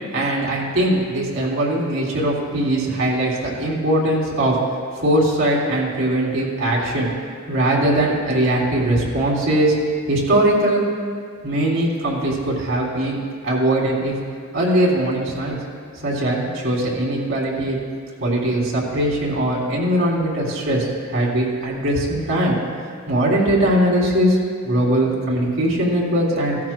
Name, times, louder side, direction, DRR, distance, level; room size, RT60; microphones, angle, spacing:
voice 1, 0.1-4.6 5.0-7.1 7.5-9.7 10.0-10.8 11.4-13.2 13.4-14.1 14.5-15.6 16.0-17.8 18.2-22.5 23.1-24.4 24.6-26.6, right 1 dB, 70° right, -4 dB, 3.3 m, -20 dB
16.5 x 13.0 x 2.2 m, 2.1 s
head